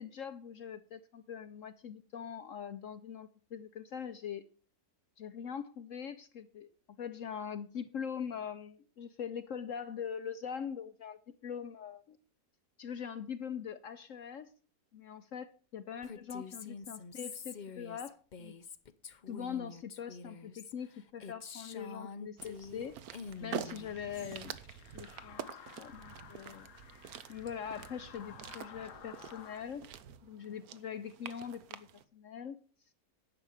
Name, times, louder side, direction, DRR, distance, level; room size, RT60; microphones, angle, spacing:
voice 1, 0.0-4.5 5.2-6.7 7.0-12.2 12.8-14.5 14.9-18.5 19.3-23.0 23.4-24.6 24.9-26.7 27.3-29.9 30.2-31.9 32.1-32.6, left 7 dB, 65° left, 0.9 m, -42 dB
Female speech woman speaking, 16.0-22.9 23.1-24.4, left 5 dB, 50° left, 0.6 m, -47 dB
sound 1, 22.4-32.0, right 9 dB, 70° right, 1.2 m, -47 dB
sound 2, 23.2-29.7, left 8 dB, 80° left, 1.5 m, -54 dB
11.0 x 7.0 x 6.3 m
omnidirectional pair, 1.7 m